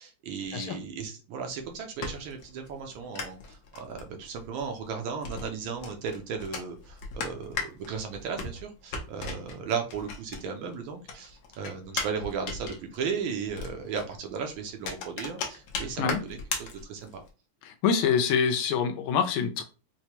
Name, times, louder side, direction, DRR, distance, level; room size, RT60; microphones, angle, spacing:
voice 1, 0.0-17.2, right 6 dB, 75° right, 4 dB, 1.3 m, -35 dB
sound 1, 1.6-10.7 11.0-17.3, left 4 dB, 65° left, 1.0 m, -38 dB
voice 2, 17.6-19.6, left 6 dB, 80° left, 6 dB, 1.5 m, -25 dB
4.6 x 2.1 x 2.9 m, 0.33 s
omnidirectional pair, 2.4 m